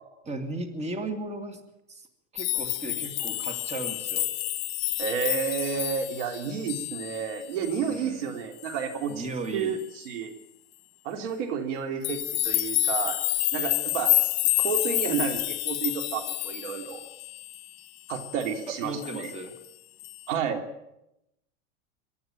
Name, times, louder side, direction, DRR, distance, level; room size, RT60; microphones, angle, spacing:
voice 1, 0.2-1.6 1.9-2.1 2.3-4.3 7.9-8.3 9.1-9.8 18.7-19.5, right 2 dB, 15° right, 6 dB, 2.5 m, -35 dB
sound 1, 2.4-7.3 7.6-8.0 8.6-8.8 12.0-17.7 18.1-18.6 19.0-19.4 20.0-20.2, left 16 dB, 45° left, 1.8 m, -29 dB
voice 2, 5.0-9.2 9.5-10.3 11.0-13.2 13.5-14.2 14.6-17.0 18.1-19.3 20.3-20.6, right 7 dB, 70° right, 5 dB, 3.2 m, -31 dB
23.5 x 12.5 x 9.1 m, 0.86 s
hypercardioid pair, 110°, 37 cm